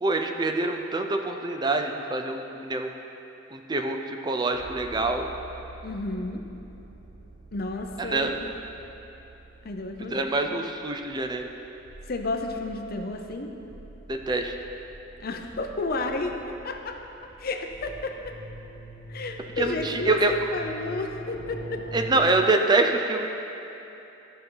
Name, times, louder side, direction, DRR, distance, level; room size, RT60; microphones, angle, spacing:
voice 1, 0.0-2.9 3.5-5.3 8.0-8.4 10.1-11.5 14.1-14.5 19.6-20.3 21.9-23.3, right 2 dB, 20° right, 4 dB, 0.4 m, -25 dB
sound 1, 4.5-22.3, right 1 dB, 70° right, 1.3 m, -44 dB
voice 2, 5.8-6.4 7.5-8.3 9.6-10.2 12.1-13.5 15.2-17.0 17.4-18.2 19.1-21.9, left 2 dB, 50° left, 4 dB, 0.6 m, -32 dB
13.5 x 5.5 x 3.9 m, 2.9 s
head